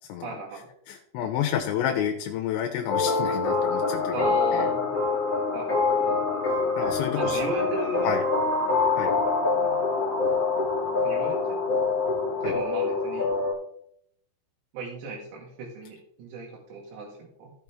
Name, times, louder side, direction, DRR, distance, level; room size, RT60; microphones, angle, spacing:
voice 1, 0.2-0.6 4.1-4.9 5.5-6.2 7.1-8.1 11.0-11.6 12.4-13.3 14.7-17.5, right 3 dB, 70° right, -3 dB, 3.7 m, -35 dB
voice 2, 0.9-4.7 6.4-7.4 8.0-8.3 9.0-9.1 12.4-12.5, left 9 dB, 80° left, 3 dB, 3.1 m, -30 dB
sound 1, 2.9-13.5, left 4 dB, 15° left, 1.8 m, -25 dB
16.0 x 6.2 x 3.5 m, 0.72 s
omnidirectional pair, 5.4 m